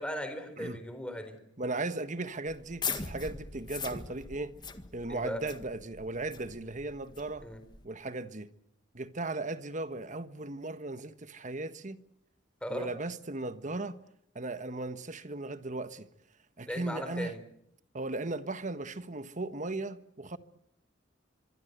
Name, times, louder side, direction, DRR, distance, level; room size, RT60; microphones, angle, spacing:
voice 1, 0.0-1.4 5.1-5.4 7.4-7.6 12.6-12.9 16.7-17.4, equal, 5° left, 4.2 m, -37 dB
voice 2, 1.6-4.6 4.9-7.5 7.8-8.5 8.9-12.0 12.7-14.0 14.3-16.1 16.6-17.3 17.9-20.4, right 2 dB, 40° right, 1.4 m, -37 dB
sound 1, 2.5-7.8, left 5 dB, 25° left, 1.8 m, -41 dB
25.0 x 24.0 x 8.1 m
head